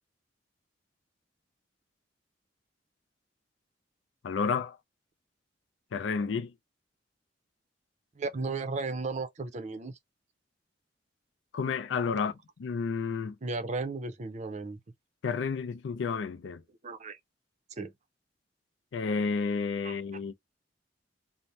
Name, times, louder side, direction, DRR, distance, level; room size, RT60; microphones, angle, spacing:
voice 1, 4.2-4.8 5.9-6.5 11.5-12.3 12.6-13.4 15.2-16.6 18.9-20.3, left 5 dB, 75° left, 0.4 m, -31 dB
voice 2, 8.2-10.0 13.4-14.8 16.8-17.2 17.8-17.9 19.8-20.0, right 3 dB, 40° right, 0.5 m, -35 dB
2.7 x 2.0 x 3.1 m
head